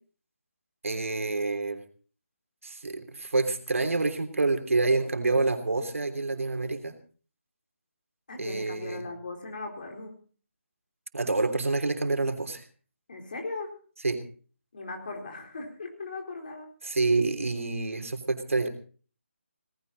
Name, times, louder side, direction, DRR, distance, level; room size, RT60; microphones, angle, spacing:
voice 1, 0.8-1.8 2.6-6.9 8.4-9.0 11.1-12.6 14.0-14.2 16.8-18.7, right 3 dB, 80° right, 6 dB, 3.2 m, -27 dB
voice 2, 8.3-10.2 13.1-13.8 14.7-16.7, left 3 dB, 40° left, 2 dB, 4.1 m, -38 dB
18.5 x 16.0 x 4.1 m, 0.41 s
hypercardioid pair, 175°, 7 cm